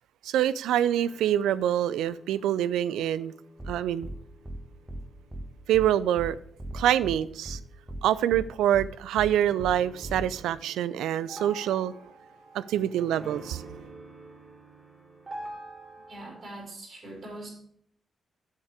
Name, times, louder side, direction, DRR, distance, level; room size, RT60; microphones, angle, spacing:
voice 1, 0.2-3.3 3.7-4.1 5.7-6.4 6.7-7.6 8.0-12.0 12.5-13.7, right 11 dB, 80° right, 0.3 m, -26 dB
sound 1, 0.8-8.6 9.3-16.4, right 2 dB, 40° right, 3.1 m, -48 dB
sound 2, 3.6-3.7 4.0-4.2 4.4-4.6 4.9-5.0 5.3-5.4 5.7-5.9 6.2-6.3 6.6-7.2 7.4-7.6 7.9-8.0 8.3-8.4 8.7-8.9 9.2-9.3 9.6-9.7 10.0-10.2, right 1 dB, 10° right, 1.5 m, -37 dB
voice 2, 15.9-17.5, right 1 dB, 60° right, 4.9 m, -42 dB
8.4 x 7.3 x 4.8 m
hypercardioid pair, 40°, 0 cm